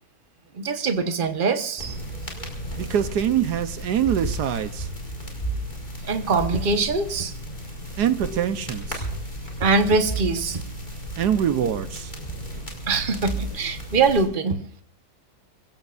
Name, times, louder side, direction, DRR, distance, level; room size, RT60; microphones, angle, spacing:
voice 1, 0.5-2.0 6.0-7.3 8.3-8.4 9.6-10.6 12.9-14.6, right 4 dB, 35° right, 7 dB, 1.3 m, -23 dB
sound 1, 1.8-14.2, right 1 dB, 25° left, 4.6 m, -34 dB
voice 2, 2.8-4.9 8.0-9.1 11.2-12.1, right 9 dB, 75° right, 11 dB, 1.4 m, -24 dB
25.5 x 16.0 x 2.5 m, 0.63 s
omnidirectional pair, 1.8 m